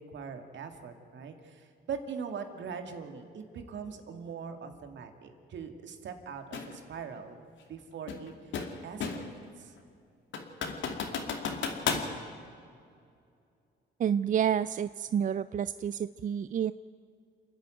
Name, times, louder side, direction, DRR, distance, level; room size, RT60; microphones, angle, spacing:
voice 1, 0.0-8.5 8.8-9.7, right 6 dB, 65° right, 6 dB, 2.4 m, -42 dB
sound 1, 6.5-6.7 8.1-9.4 9.8-9.9 10.3-12.1, left 5 dB, 70° left, 2.5 m, -33 dB
voice 2, 14.0-16.7, right 8 dB, 40° right, 15 dB, 0.4 m, -29 dB
28.5 x 10.5 x 9.2 m, 2.4 s
cardioid pair, 90°, 20 cm